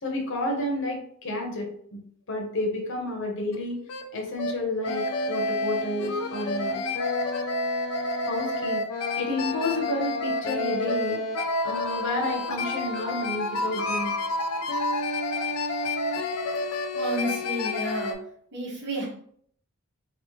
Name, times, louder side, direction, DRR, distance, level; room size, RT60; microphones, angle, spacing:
voice 1, 0.0-2.0 2.3-3.8 4.1-5.0 5.3-6.8 8.2-8.8 9.2-11.2 11.6-14.2, left 1 dB, 60° left, 1 dB, 0.9 m, -30 dB
sound 1, 3.5-3.6 3.9-4.0 4.4-4.5 4.8-18.1, left 2 dB, 75° left, 0.4 m, -29 dB
voice 2, 16.9-18.1 18.5-19.1, right 1 dB, 55° right, -3 dB, 1.1 m, -31 dB
3.0 x 2.8 x 3.0 m, 0.63 s
head